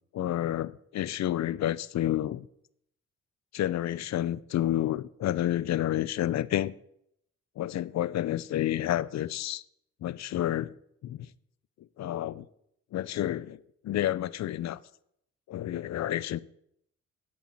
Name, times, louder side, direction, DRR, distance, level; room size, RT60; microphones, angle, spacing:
voice 1, 0.1-2.5 3.5-6.7 7.6-9.6 10.0-10.7 11.0-11.3 12.0-12.5 12.9-14.8 15.5-16.4, left 12 dB, 65° left, 0.6 m, -30 dB
9.0 x 7.7 x 8.8 m
cardioid pair, 90°, 30 cm